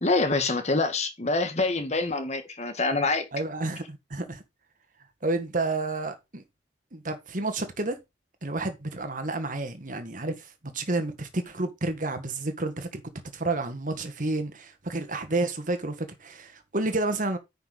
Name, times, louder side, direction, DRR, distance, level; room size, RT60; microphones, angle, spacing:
voice 1, 0.0-3.2, left 3 dB, 40° left, 1.5 m, -26 dB
voice 2, 3.3-4.4 5.2-6.4 6.9-8.0 8.4-13.0 13.3-17.4, right 2 dB, 45° right, 1.6 m, -30 dB
9.5 x 5.5 x 4.0 m
head